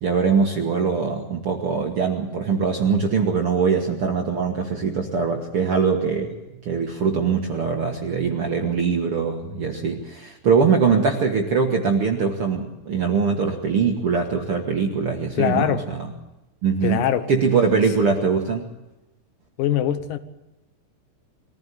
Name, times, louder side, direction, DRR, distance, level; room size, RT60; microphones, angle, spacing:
voice 1, 0.0-6.4 6.6-16.1 16.6-17.0 17.3-18.7, right 5 dB, 50° right, 1.8 m, -22 dB
voice 2, 15.4-15.9 16.8-17.3 19.6-20.2, left 10 dB, 75° left, 2.7 m, -22 dB
22.5 x 15.5 x 8.4 m
omnidirectional pair, 4.1 m